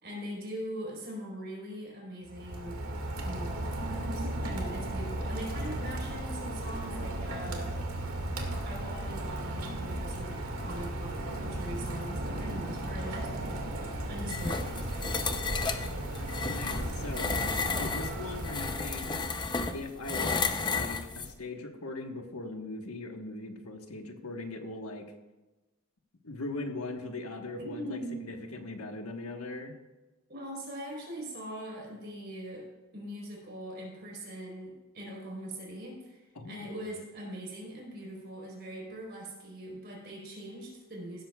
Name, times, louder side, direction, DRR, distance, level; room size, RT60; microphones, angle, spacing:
voice 1, 0.0-2.8 3.2-7.8 8.6-15.4 27.6-28.4 30.3-32.7 32.9-41.2, right 1 dB, 45° right, -2 dB, 4.2 m, -42 dB
Rain, 2.3-19.5, right 1 dB, 80° right, 1.9 m, -36 dB
sound 1, 14.3-21.3, left 4 dB, 20° left, 0.6 m, -33 dB
voice 2, 15.8-17.3 17.8-19.1 19.7-25.0 26.2-28.0 28.3-29.7 36.4-36.9, left 2 dB, 80° left, 4 dB, 1.3 m, -40 dB
16.0 x 13.0 x 2.3 m, 1.1 s
head